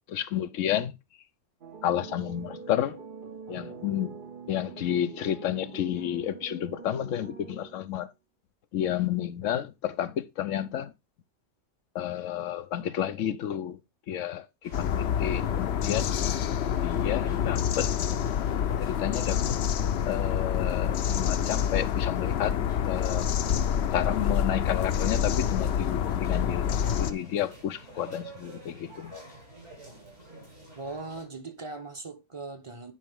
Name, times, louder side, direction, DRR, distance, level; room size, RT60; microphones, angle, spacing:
voice 1, 0.1-0.9 1.8-3.0 3.5-4.2 4.5-8.1 8.7-10.9 11.9-13.8 14.1-14.4 14.8-16.1 16.8-17.9 18.8-19.4 20.1-22.6 22.9-23.3 23.9-29.2, left 11 dB, 90° left, 1.0 m, -31 dB
sound 1, 1.6-8.0, right 5 dB, 50° right, 0.9 m, -44 dB
sound 2, 14.6-31.2, right 2 dB, 70° right, 6.4 m, -50 dB
sound 3, 14.7-27.1, left 8 dB, 65° left, 0.9 m, -27 dB
voice 2, 30.8-32.9, right 3 dB, 25° right, 1.0 m, -39 dB
10.0 x 5.0 x 3.5 m
omnidirectional pair, 1.3 m